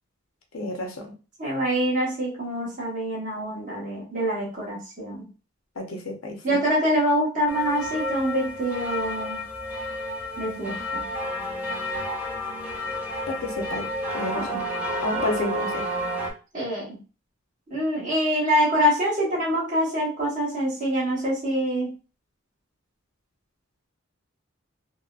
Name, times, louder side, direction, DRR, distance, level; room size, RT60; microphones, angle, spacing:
voice 1, 0.5-1.1 5.8-6.6 13.3-13.9 14.1-14.6 15.0-15.9, left 1 dB, 85° left, 1 dB, 0.8 m, -30 dB
voice 2, 1.4-5.2 6.4-9.4 10.4-11.0 14.4-14.5 15.2-15.3 16.5-17.0 17.7-21.9, equal, 35° right, -5 dB, 1.2 m, -25 dB
sound 1, 7.5-16.3, equal, 10° right, 0.5 m, -30 dB
3.6 x 2.1 x 2.4 m, 0.33 s
head